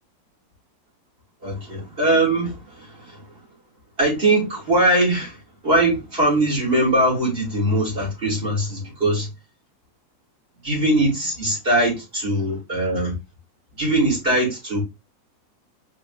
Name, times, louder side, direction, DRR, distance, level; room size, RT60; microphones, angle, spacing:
voice 1, 1.4-3.2 4.0-5.4 5.6-9.3 10.6-13.1 13.8-14.8, right 1 dB, 30° right, 3.4 m, -21 dB
5.2 x 3.5 x 2.5 m
omnidirectional pair, 2.0 m